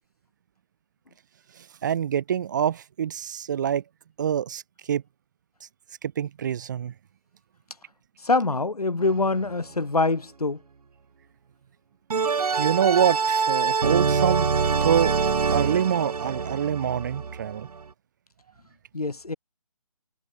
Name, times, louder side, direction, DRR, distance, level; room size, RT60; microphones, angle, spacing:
voice 1, 1.8-3.8 4.2-4.6 4.9-5.0 6.0-6.9 12.6-14.5 14.8-15.2 15.5-17.7, right 9 dB, 30° right, 1.0 m, -25 dB
voice 2, 8.2-10.6 18.9-19.3, left 3 dB, 85° left, 6.6 m, -24 dB
sound 1, 9.0-9.5 12.1-17.8, right 5 dB, 85° right, 0.7 m, -25 dB
figure-of-eight pair, 160°, 19 cm